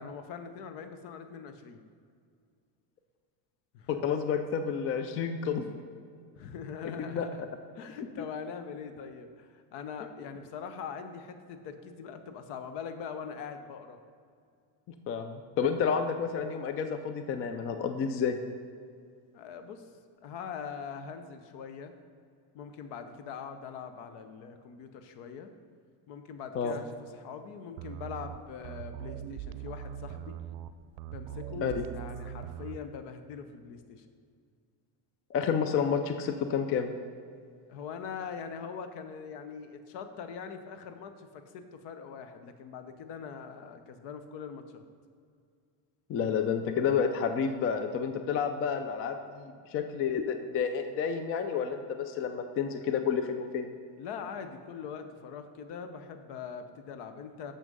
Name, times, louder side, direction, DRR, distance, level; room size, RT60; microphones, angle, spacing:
voice 1, 0.0-1.8 3.7-4.0 6.4-7.4 7.7-14.0 19.3-19.9 20.2-21.9 22.5-25.5 26.1-30.4 31.1-34.1 37.7-44.8 54.0-57.5, left 6 dB, 60° left, 9 dB, 0.9 m, -42 dB
voice 2, 3.9-5.7 7.0-7.3 15.1-18.4 26.5-26.8 31.6-31.7 35.3-36.9 46.1-53.7, left 6 dB, 30° left, 8 dB, 0.4 m, -30 dB
sound 1, 27.8-32.8, right 10 dB, 80° right, 0.6 m, -41 dB
6.9 x 6.1 x 5.3 m, 2.2 s
cardioid pair, 125°, 46 cm